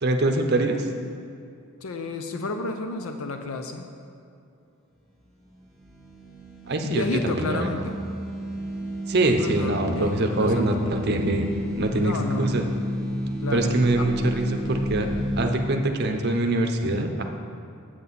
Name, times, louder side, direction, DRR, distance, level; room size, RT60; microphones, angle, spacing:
voice 1, 0.0-0.9 6.6-7.8 9.1-11.5 11.8-12.7 13.5-15.1 15.4-17.2, right 2 dB, 45° right, 4 dB, 0.6 m, -24 dB
voice 2, 1.8-3.9 6.8-8.0 9.2-10.8 12.0-12.6 13.4-14.1, left 3 dB, 70° left, 6 dB, 0.5 m, -31 dB
sound 1, 5.6-15.4, equal, ahead, 1.2 m, -32 dB
7.9 x 7.6 x 4.1 m, 2.5 s
head